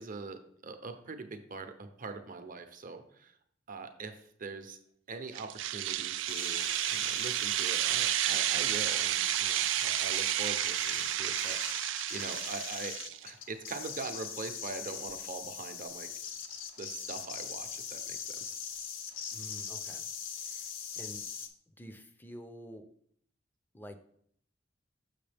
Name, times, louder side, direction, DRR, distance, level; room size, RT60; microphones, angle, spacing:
voice 1, 0.0-3.4 3.7-4.8 5.1-12.9 13.2-16.1 16.8-18.5, right 4 dB, 45° right, 7 dB, 0.7 m, -43 dB
sound 1, 5.4-13.2, right 13 dB, 70° right, 0.3 m, -31 dB
sound 2, 6.3-21.5, left 7 dB, 85° left, 0.7 m, -42 dB
voice 2, 19.3-20.1 20.4-20.7 21.0-21.3 21.8-22.9 23.7-24.0, equal, 10° left, 8 dB, 0.5 m, -48 dB
6.6 x 6.2 x 3.4 m, 0.65 s
head